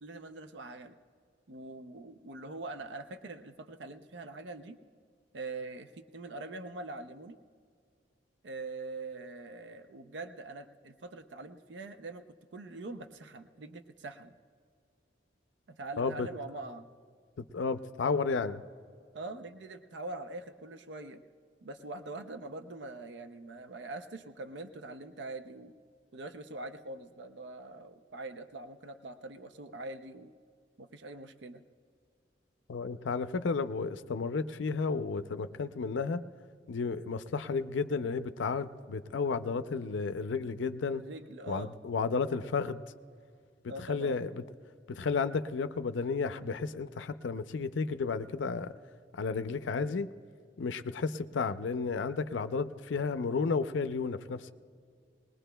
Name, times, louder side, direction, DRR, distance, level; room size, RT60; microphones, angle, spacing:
voice 1, 0.0-1.0 1.5-4.8 5.3-7.4 8.4-12.2 12.5-14.3 15.7-16.9 19.1-21.2 21.6-25.7 26.1-30.3 30.8-31.6 40.9-41.7 43.7-44.2, right 2 dB, 70° right, 9 dB, 0.5 m, -43 dB
voice 2, 16.0-16.3 17.4-18.6 32.7-36.2 36.7-41.0 41.5-42.8 43.9-44.4 44.9-48.7 49.1-50.1 50.6-54.5, left 4 dB, 90° left, 11 dB, 0.5 m, -32 dB
20.5 x 20.0 x 2.2 m, 2.1 s
head